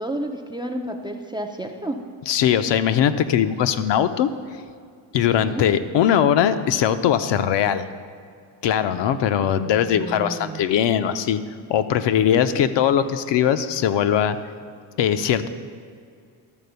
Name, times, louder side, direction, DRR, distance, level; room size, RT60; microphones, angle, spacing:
voice 1, 0.0-2.0 5.3-5.7 9.6-10.7 12.3-12.4, right 1 dB, 10° right, 3 dB, 0.3 m, -31 dB
voice 2, 2.3-4.3 5.1-7.8 8.6-11.4 11.7-14.4 15.0-15.5, left 9 dB, 65° left, 10 dB, 0.6 m, -20 dB
12.0 x 4.2 x 6.8 m, 2.2 s
cardioid pair, 140°, 47 cm